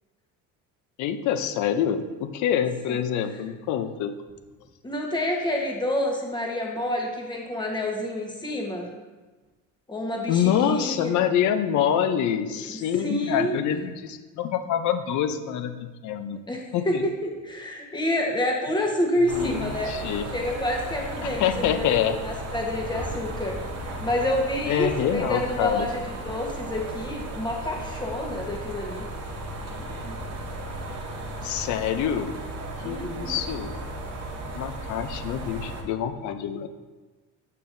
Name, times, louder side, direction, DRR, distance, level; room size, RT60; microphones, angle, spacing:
voice 1, 1.0-4.1 10.3-16.4 16.7-17.0 19.3-20.2 21.2-22.2 24.7-25.9 31.4-32.3 32.8-33.7 34.5-36.7, left 9 dB, 60° left, 9 dB, 0.6 m, -26 dB
voice 2, 4.8-8.9 9.9-11.1 12.7-13.6 16.5-17.1 17.4-19.9 20.3-23.6 24.0-29.0 32.8-33.4, left 1 dB, 15° left, 0 dB, 1.2 m, -28 dB
sound 1, 19.3-35.8, right 1 dB, 45° right, 1.1 m, -35 dB
7.5 x 6.7 x 2.6 m, 1.2 s
cardioid pair, 135°, 34 cm